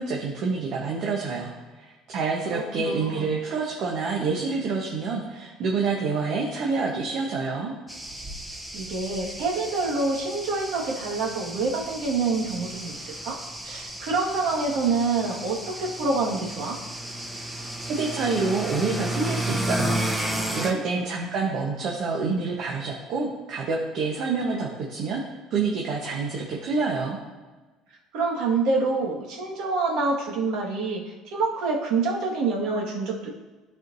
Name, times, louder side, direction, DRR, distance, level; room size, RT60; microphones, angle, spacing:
voice 1, 0.0-1.5 2.1-7.7 17.9-25.2 25.5-27.2, right 4 dB, 50° right, -2 dB, 1.1 m, -27 dB
voice 2, 2.5-3.3 8.7-13.4 13.6-16.8 20.9-21.0 28.1-33.3, right 3 dB, 70° right, -2 dB, 1.8 m, -27 dB
sound 1, 7.9-20.7, right 1 dB, 5° right, 0.8 m, -33 dB
13.0 x 4.5 x 2.7 m, 1.3 s
cardioid pair, 145°, 0 cm